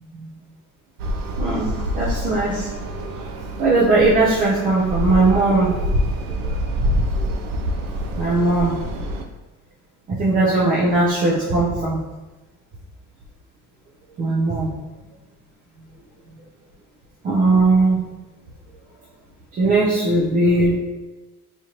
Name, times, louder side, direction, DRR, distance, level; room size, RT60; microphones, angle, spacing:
sound 1, 1.0-9.3, equal, 80° right, 0.5 m, -26 dB
voice 1, 1.4-2.7 3.6-5.8 8.2-8.8 10.1-12.0 14.2-14.7 17.2-18.0 19.6-20.8, right 2 dB, 25° right, -5 dB, 0.4 m, -18 dB
4.2 x 2.5 x 2.9 m, 1.1 s
cardioid pair, 160°, 34 cm